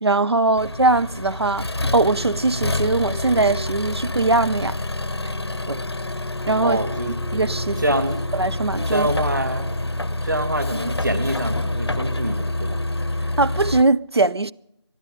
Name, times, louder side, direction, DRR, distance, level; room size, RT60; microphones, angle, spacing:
voice 1, 0.0-4.8 5.7-5.8 6.5-6.8 7.3-7.8 8.3-9.1 13.4-14.5, right 3 dB, 65° right, 0.6 m, -21 dB
Accelerating revving vroom, 0.6-13.8, left 2 dB, 65° left, 0.7 m, -27 dB
voice 2, 6.6-7.1 7.8-8.2 8.9-12.8, right 1 dB, 45° right, 2.1 m, -25 dB
24.0 x 11.0 x 5.2 m
figure-of-eight pair, 175°, 15 cm